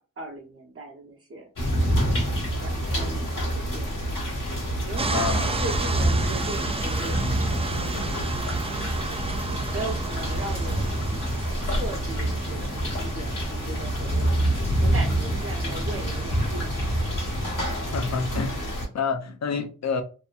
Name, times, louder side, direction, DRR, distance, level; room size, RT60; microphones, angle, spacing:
voice 1, 0.0-1.5 2.6-4.2 4.8-8.7 9.7-10.9 11.7-14.5 14.8-16.9, right 2 dB, 45° right, 0.9 m, -38 dB
sound 1, 1.6-18.9, right 1 dB, 75° left, 1.1 m, -27 dB
sound 2, 5.0-17.8, right 3 dB, 20° right, 0.3 m, -34 dB
voice 2, 5.1-5.5 17.9-20.0, left 5 dB, 60° left, 0.6 m, -28 dB
2.8 x 2.1 x 2.4 m
cardioid pair, 55°, 32 cm